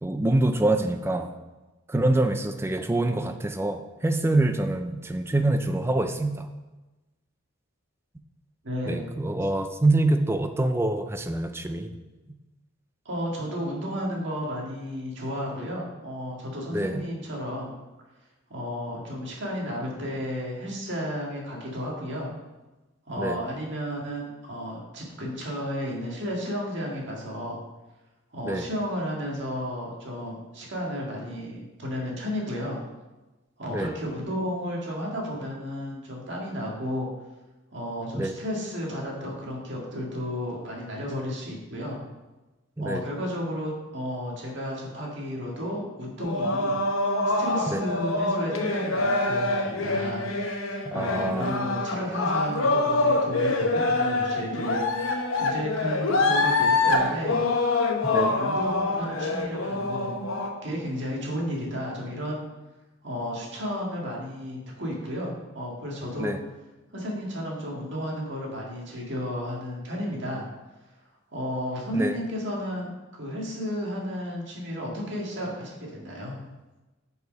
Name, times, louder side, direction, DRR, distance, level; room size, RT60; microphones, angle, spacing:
voice 1, 0.0-1.3 1.9-6.5 8.9-11.9 16.7-17.0 23.2-23.4 28.5-28.7 33.6-33.9 38.1-38.3 42.8-43.0 47.7-47.8 50.9-51.5 58.0-58.3 66.2-66.4 71.9-72.2, right 2 dB, 10° right, 8 dB, 0.4 m, -25 dB
voice 2, 8.6-9.0 13.1-17.7 18.5-22.3 23.1-27.6 28.3-32.8 33.6-37.1 37.7-42.0 42.8-46.8 47.2-50.2 50.9-57.4 58.0-60.3 60.6-62.4 63.0-66.3 66.9-70.5 71.3-76.4, equal, 60° right, -2 dB, 1.9 m, -33 dB
sound 1, 46.2-60.5, left 2 dB, 80° left, 0.8 m, -25 dB
6.7 x 4.8 x 5.1 m, 1.1 s
head